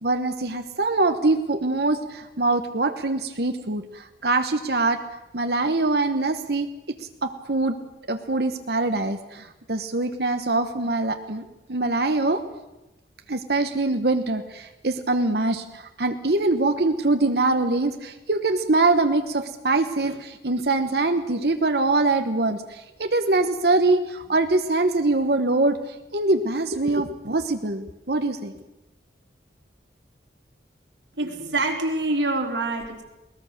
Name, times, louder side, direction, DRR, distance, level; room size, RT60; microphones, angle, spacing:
voice 1, 0.0-5.0 5.3-6.7 7.2-7.7 8.1-11.4 11.7-12.4 13.3-25.8 26.1-28.5, right 2 dB, 60° right, 7 dB, 1.2 m, -23 dB
voice 2, 31.2-33.0, right 2 dB, 85° right, 2 dB, 3.7 m, -25 dB
21.0 x 20.0 x 6.7 m, 0.99 s
head